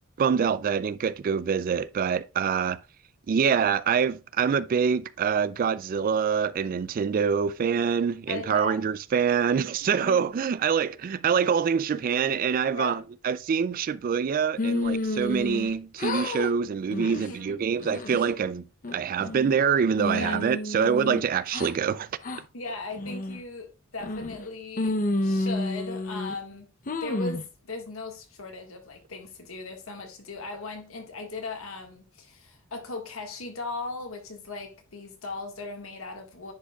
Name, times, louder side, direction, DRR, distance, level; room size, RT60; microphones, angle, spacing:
voice 1, 0.2-2.8 3.3-18.6 18.9-22.1, right 6 dB, 40° right, 0.3 m, -25 dB
voice 2, 8.3-8.8 10.0-10.3 12.7-13.1 17.1-17.6 20.2-20.5 22.5-26.7 27.0-36.5, left 3 dB, 75° left, 1.6 m, -38 dB
sound 1, 14.6-15.7 16.0-16.5 16.9-17.3 17.8-18.3 18.8-19.6 20.0-21.7 22.2-22.4 23.0-23.4 24.0-24.4 24.8-26.4 26.9-27.4, left 2 dB, 40° left, 0.7 m, -30 dB
10.0 x 5.1 x 2.3 m
head